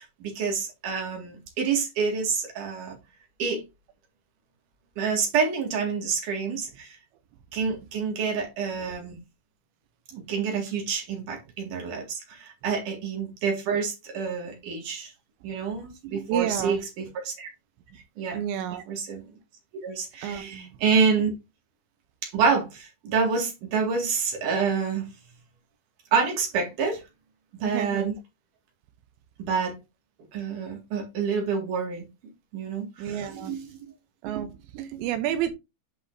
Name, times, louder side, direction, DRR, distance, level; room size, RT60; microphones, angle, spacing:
voice 1, 0.0-2.9 3.4-3.6 5.0-7.0 7.5-9.2 10.1-15.1 15.4-17.5 18.2-18.4 18.9-19.2 19.8-21.3 22.2-25.1 26.1-27.0 27.6-28.2 29.4-29.8 30.3-32.1 32.5-33.7, right 5 dB, 50° right, 3.2 m, -27 dB
voice 2, 16.0-16.8 18.3-18.8 20.2-20.7 27.6-28.1 33.0-33.5 34.2-35.5, right 11 dB, 80° right, 3.0 m, -30 dB
8.5 x 5.5 x 2.7 m
omnidirectional pair, 5.2 m